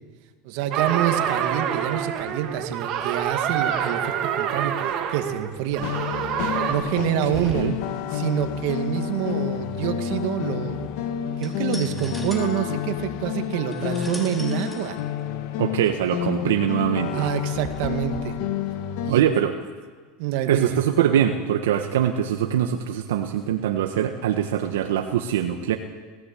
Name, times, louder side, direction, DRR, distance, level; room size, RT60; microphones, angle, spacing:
voice 1, 0.4-5.9 6.7-7.7 8.1-10.9 11.4-15.0 17.1-18.4 19.0-19.2 20.2-20.8, right 11 dB, 65° right, 7 dB, 2.1 m, -27 dB
sound 1, 0.7-6.7, right 9 dB, 50° right, 2.7 m, -26 dB
sound 2, 5.8-19.1, left 10 dB, 65° left, 1.9 m, -29 dB
sound 3, 7.2-18.2, equal, 10° left, 4.3 m, -42 dB
voice 2, 7.4-7.7 15.6-17.2 19.1-19.5 20.5-25.8, right 10 dB, 85° right, 5 dB, 1.4 m, -23 dB
20.0 x 16.0 x 8.5 m, 1.5 s
supercardioid pair, 120°, 0 cm